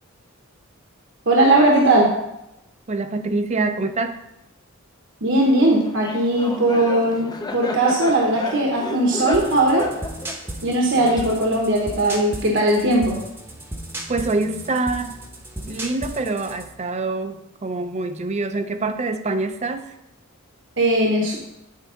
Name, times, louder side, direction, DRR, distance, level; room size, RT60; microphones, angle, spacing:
voice 1, 1.3-2.1 5.2-9.9 10.6-13.2 20.8-21.4, right 1 dB, 60° right, -1 dB, 1.0 m, -18 dB
voice 2, 2.9-4.2 14.1-15.2 15.6-20.0, right 3 dB, 30° right, 9 dB, 0.5 m, -25 dB
Laughter, 5.8-11.7, left 2 dB, 20° left, 0.5 m, -33 dB
sound 1, 9.3-16.7, right 1 dB, 10° right, 0.9 m, -35 dB
9.2 x 4.6 x 3.9 m, 0.87 s
head